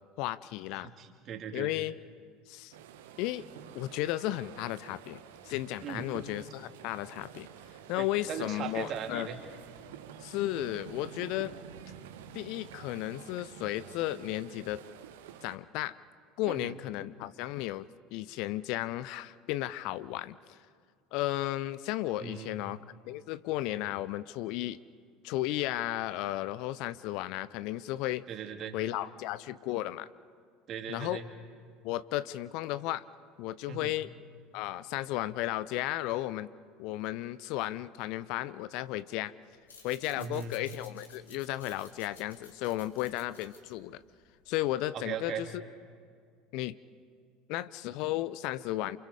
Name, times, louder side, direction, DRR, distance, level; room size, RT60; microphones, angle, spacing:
voice 1, 0.2-0.9 1.5-1.9 2.5-2.7 3.2-3.4 3.7-7.5 7.9-9.3 10.2-11.5 12.3-14.8 15.4-16.0 16.4-20.6 21.1-24.8 25.2-28.2 28.7-30.1 30.9-31.2 31.8-33.1 33.4-34.1 34.5-36.5 36.8-39.3 39.8-44.0 44.5-45.6 46.5-46.8 47.5-49.0, left 15 dB, 55° left, 17 dB, 0.6 m, -34 dB
voice 2, 0.8-1.7 5.8-6.0 8.0-9.4 16.5-16.7 22.2-22.6 28.3-28.8 30.7-31.3 33.7-33.9 40.2-40.5 44.9-45.5, right 7 dB, 40° right, 4 dB, 3.0 m, -39 dB
sound 1, 2.7-15.6, right 9 dB, 65° right, 1.3 m, -49 dB
sound 2, 39.6-44.7, left 4 dB, 75° left, 3.5 m, -55 dB
28.5 x 27.5 x 4.9 m, 2.1 s
figure-of-eight pair, 70°, 0 cm